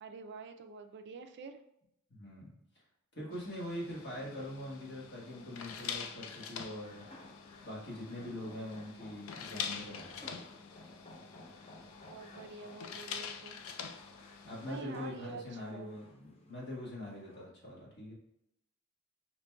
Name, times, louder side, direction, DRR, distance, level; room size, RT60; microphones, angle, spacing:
voice 1, 0.0-1.6 12.1-13.6 14.6-16.0, right 4 dB, 55° right, 7 dB, 0.4 m, -47 dB
voice 2, 2.1-2.5 2.7-2.8 3.1-7.0 7.6-10.3 14.4-18.1, left 1 dB, 55° left, -4 dB, 1.5 m, -43 dB
sound 1, 3.3-14.8, left 7 dB, 75° left, 0.4 m, -45 dB
sound 2, 3.7-17.5, left 1 dB, 30° left, 0.6 m, -56 dB
5.1 x 2.9 x 2.3 m, 0.80 s
head